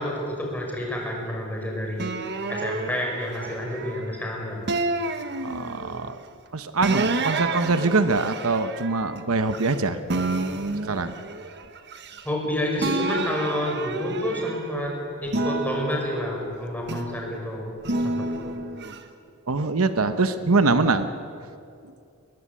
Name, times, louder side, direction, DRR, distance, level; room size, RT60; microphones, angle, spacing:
voice 1, 0.0-2.1 2.5-4.7 12.2-14.9 15.2-17.8 18.0-18.6, left 1 dB, 10° left, -1 dB, 5.6 m, -29 dB
sound 1, 2.0-4.1 4.7-6.0 6.8-9.8 10.1-12.5 12.8-14.8 15.3-17.3 17.8-19.0, right 2 dB, 55° right, 1.4 m, -30 dB
voice 2, 5.4-6.2 6.5-10.0 10.9-11.1 19.5-21.1 21.8-21.9, right 3 dB, 80° right, 10 dB, 1.1 m, -23 dB
21.5 x 21.5 x 8.5 m, 2.4 s
head